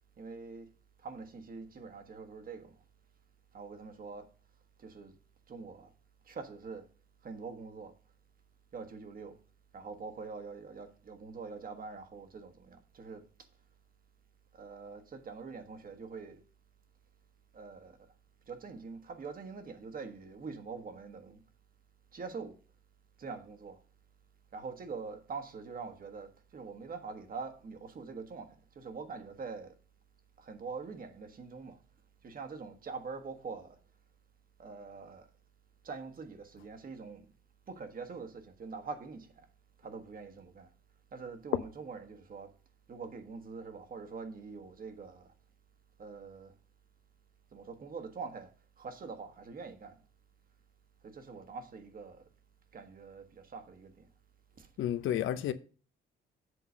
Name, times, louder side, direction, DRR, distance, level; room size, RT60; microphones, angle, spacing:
voice 1, 0.2-0.7 1.0-2.7 3.5-4.3 4.8-5.1 5.5-5.9 6.3-6.9 7.2-7.9 8.7-9.4 9.7-13.2 14.6-16.4 17.5-18.0 18.5-21.4 22.1-22.6 23.2-23.8 24.5-29.7 30.4-31.8 32.2-33.8 34.6-35.3 35.8-37.2 37.7-39.4 39.8-40.7 41.1-42.5 42.9-45.3 46.0-46.5 47.5-48.5 48.8-50.0 51.0-52.2 52.7-54.1 54.6-54.7, right 4 dB, 45° right, 1.4 m, -44 dB
voice 2, 54.8-55.5, left 11 dB, 80° left, 0.8 m, -30 dB
7.8 x 3.9 x 6.2 m
cardioid pair, 90°, 20 cm